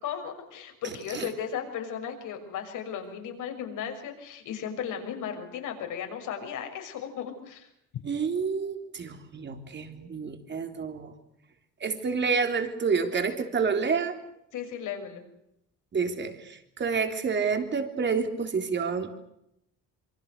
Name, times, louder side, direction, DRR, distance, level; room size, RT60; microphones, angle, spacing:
voice 1, 0.0-7.7 14.5-15.2, left 8 dB, 70° left, 5 dB, 6.2 m, -35 dB
voice 2, 8.0-11.1 11.8-14.2 15.9-19.1, right 5 dB, 35° right, 6 dB, 3.6 m, -29 dB
27.0 x 24.5 x 6.7 m, 0.80 s
cardioid pair, 130°, 32 cm